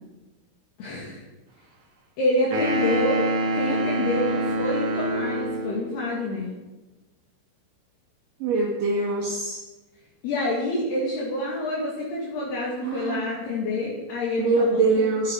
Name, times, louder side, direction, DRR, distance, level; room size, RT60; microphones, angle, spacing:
voice 1, 0.8-1.2 2.2-3.3 3.5-6.5 10.2-15.1, left 1 dB, 60° left, -4 dB, 4.0 m, -27 dB
sound 1, 2.5-5.9, right 1 dB, 45° right, 3.3 m, -26 dB
voice 2, 8.4-9.6 12.8-13.3 14.4-15.3, right 3 dB, 60° right, -2 dB, 2.5 m, -23 dB
24.5 x 9.4 x 4.8 m, 1.1 s
omnidirectional pair, 5.9 m